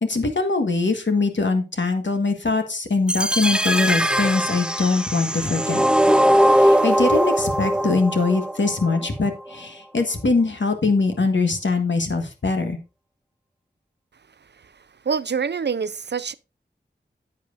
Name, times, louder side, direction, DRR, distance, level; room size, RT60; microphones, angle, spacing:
voice 1, 0.0-5.8 6.5-12.8, left 3 dB, 80° left, 1.5 m, -22 dB
sound 1, 3.1-9.1, equal, 5° right, 0.5 m, -20 dB
voice 2, 15.1-16.3, right 6 dB, 65° right, 0.5 m, -25 dB
10.5 x 7.6 x 2.5 m
wide cardioid pair, 45°, 19 cm